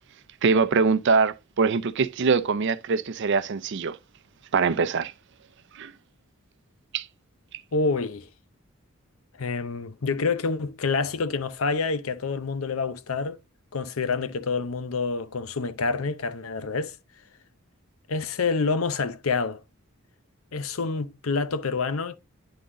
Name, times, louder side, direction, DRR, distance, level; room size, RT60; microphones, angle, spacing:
voice 1, 0.4-4.0 4.5-5.1 5.8-5.9 6.9-7.1, right 5 dB, 60° right, 0.5 m, -23 dB
voice 2, 7.7-8.3 9.4-13.4 13.7-17.0 18.1-19.6 20.5-22.2, left 4 dB, 85° left, 0.7 m, -27 dB
9.6 x 4.0 x 3.7 m
head